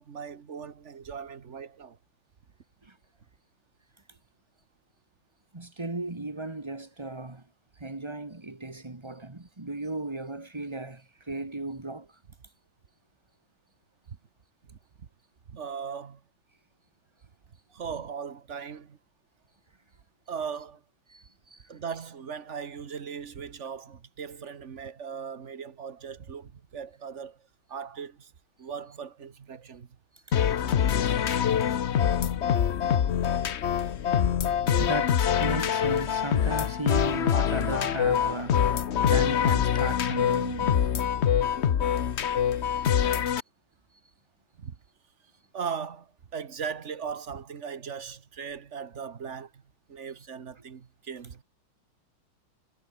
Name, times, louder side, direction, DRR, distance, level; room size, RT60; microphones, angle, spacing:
voice 1, 0.0-2.0 14.1-14.2 14.7-14.8 15.5-16.2 17.7-19.0 20.3-20.8 21.7-27.4 27.7-28.3 28.6-29.9 43.0-43.2 44.6-44.7 45.5-49.6 49.9-51.4, right 6 dB, 40° right, 1.3 m, -38 dB
voice 2, 5.5-7.4 7.8-12.1 21.1-21.6 30.3-30.4 30.9-31.0 34.5-38.6 39.0-40.8, right 2 dB, 15° right, 1.6 m, -36 dB
sound 1, 30.3-43.4, left 8 dB, 65° left, 0.6 m, -25 dB
omnidirectional pair, 2.3 m